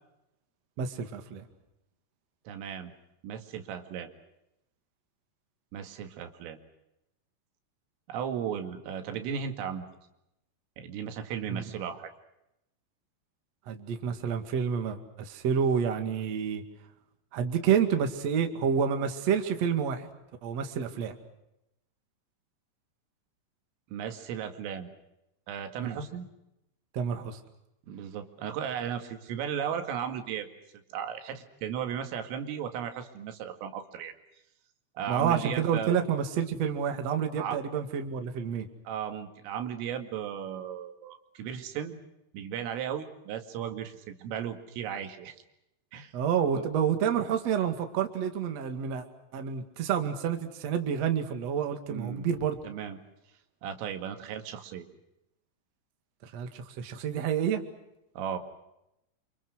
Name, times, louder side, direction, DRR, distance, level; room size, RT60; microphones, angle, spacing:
voice 1, 0.8-1.4 11.5-11.6 13.7-16.6 17.3-20.1 20.4-21.2 25.8-26.0 26.9-27.4 35.1-38.7 46.1-49.0 49.3-52.6 56.2-57.6, right 7 dB, 45° right, 6 dB, 2.5 m, -29 dB
voice 2, 2.5-2.9 3.2-4.1 5.7-6.6 8.1-9.9 10.8-12.1 23.9-24.9 25.5-26.3 27.8-30.5 30.9-34.1 35.0-36.0 37.4-37.6 38.9-42.0 42.3-45.3 45.9-46.1 46.5-46.6 51.9-52.3 52.6-53.0 53.6-54.9 58.2-58.4, right 8 dB, 85° right, 6 dB, 4.7 m, -35 dB
29.0 x 27.0 x 6.4 m, 0.86 s
omnidirectional pair, 5.7 m